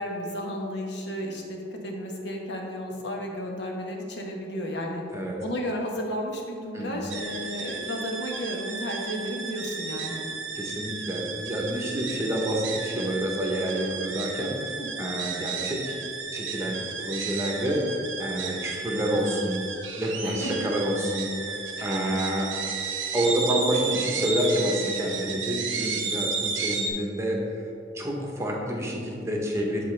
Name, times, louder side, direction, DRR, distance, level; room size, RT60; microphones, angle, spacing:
voice 1, 0.0-5.0 5.4-10.2 14.8-15.1 20.2-20.5 21.8-21.9 23.7-23.8, equal, 60° left, 0 dB, 1.1 m, -33 dB
sound 1, 7.1-26.9, right 5 dB, 85° right, 0.8 m, -33 dB
voice 2, 10.5-16.0 16.3-19.6 20.0-22.5 23.1-27.7 27.9-29.8, equal, 15° right, -1 dB, 0.9 m, -28 dB
11.5 x 3.9 x 3.3 m, 2.7 s
head